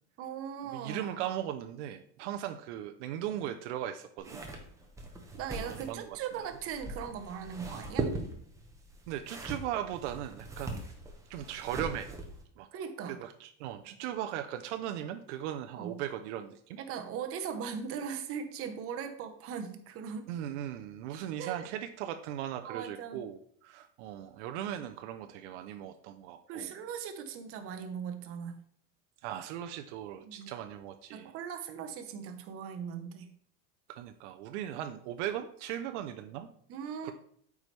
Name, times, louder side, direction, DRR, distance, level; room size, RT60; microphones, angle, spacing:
voice 1, 0.2-1.2 5.3-8.1 12.7-13.2 15.7-16.0 16.8-20.3 21.4-21.6 22.6-23.2 26.5-28.6 30.2-30.5 31.1-33.3 36.7-37.1, right 7 dB, 40° right, 6 dB, 0.9 m, -39 dB
voice 2, 0.7-4.4 5.7-6.2 9.1-10.8 11.3-12.1 12.6-12.7 13.2-16.8 20.3-26.7 29.2-31.3 33.9-36.5 37.0-37.1, right 11 dB, 75° right, 7 dB, 0.7 m, -38 dB
sound 1, 4.2-12.4, right 2 dB, 10° right, 1.0 m, -40 dB
8.2 x 4.8 x 3.3 m, 0.63 s
supercardioid pair, 145°, 36 cm